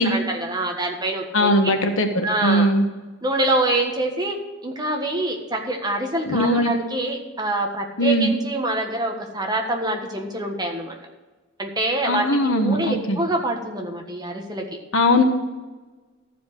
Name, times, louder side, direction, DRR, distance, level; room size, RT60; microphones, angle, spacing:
voice 1, 0.0-1.7 2.2-2.7 3.2-11.0 11.6-14.6, right 1 dB, 20° right, 2 dB, 1.5 m, -25 dB
voice 2, 1.3-2.8 6.3-6.7 8.0-8.3 12.1-13.2 14.9-15.2, left 1 dB, 80° left, 5 dB, 1.4 m, -20 dB
13.5 x 5.1 x 8.1 m, 1.2 s
head